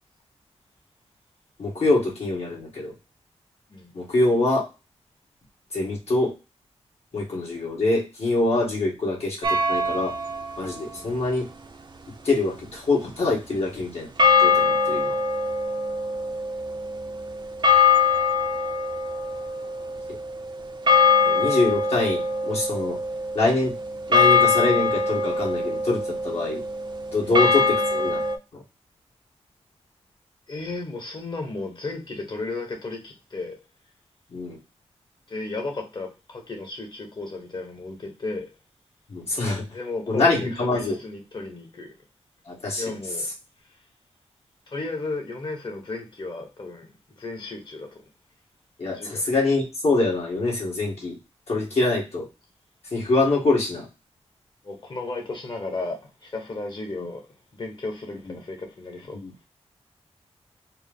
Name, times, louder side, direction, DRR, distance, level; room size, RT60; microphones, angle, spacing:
voice 1, 1.6-2.9 3.9-4.6 5.7-6.3 7.1-10.1 10.6-11.5 12.2-14.1 14.4-15.1 21.2-23.0 23.3-23.8 24.1-26.6 27.1-28.2 28.5-28.6 34.3-34.6 39.1-39.6 40.1-41.0 42.5-43.0 48.8-51.2 51.5-52.2 52.9-53.9 58.3-58.4 59.2-59.3, left 2 dB, 65° left, 1.8 m, -24 dB
sound 1, 9.4-10.5 14.2-28.4, left 4 dB, 45° right, 0.6 m, -23 dB
voice 2, 30.5-33.6 35.3-38.5 39.7-41.9 42.8-43.3 44.7-48.0 48.9-49.3 51.5-51.8 54.6-57.2 57.5-59.2, left 3 dB, 45° left, 1.2 m, -34 dB
4.4 x 2.1 x 3.6 m
wide cardioid pair, 95°, 11 cm